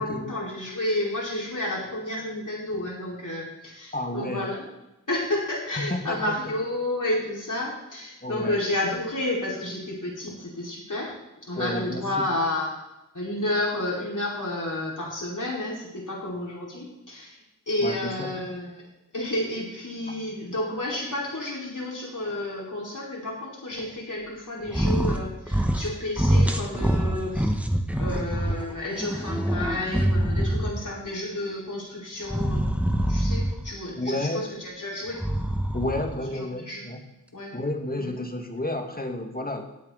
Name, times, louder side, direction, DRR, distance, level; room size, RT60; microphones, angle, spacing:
voice 1, 0.0-4.6 5.1-11.1 11.4-12.8 13.1-17.4 17.7-18.9 19.1-27.5 28.0-32.6 33.1-35.2 36.3-36.9 37.3-37.5 38.0-38.1, left 1 dB, 70° left, -4 dB, 5.1 m, -31 dB
voice 2, 3.9-4.5 5.7-6.4 8.2-8.7 11.6-12.3 17.8-18.3 34.0-34.4 35.7-37.1 37.5-39.7, left 1 dB, 30° left, 4 dB, 2.0 m, -31 dB
sound 1, 24.7-25.2 25.5-25.9 26.2-28.5 29.0-30.9 32.2-33.7 35.1-36.1, equal, 5° right, 1.5 m, -24 dB
18.5 x 8.7 x 4.1 m, 0.91 s
wide cardioid pair, 60°, 32 cm